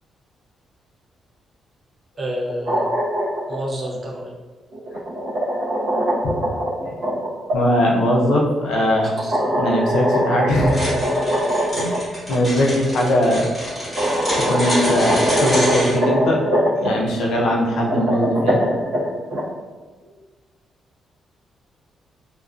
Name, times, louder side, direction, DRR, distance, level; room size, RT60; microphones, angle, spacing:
voice 1, 2.2-2.9 3.5-4.3 9.0-9.4, equal, 35° right, -2 dB, 0.5 m, -29 dB
sound 1, 2.4-3.6 4.7-7.6 9.2-12.0 12.3-12.4 13.4-13.5 14.0-16.9 17.7-19.4, equal, 80° right, 0.9 m, -22 dB
voice 2, 7.5-9.1 9.6-10.9 11.7-13.5 14.5-16.4 16.8-18.6, equal, 85° left, -2 dB, 0.5 m, -20 dB
sound 2, 10.7-15.9, equal, 10° left, 1.0 m, -25 dB
2.4 x 2.2 x 2.3 m, 1.3 s
cardioid pair, 145°, 0 cm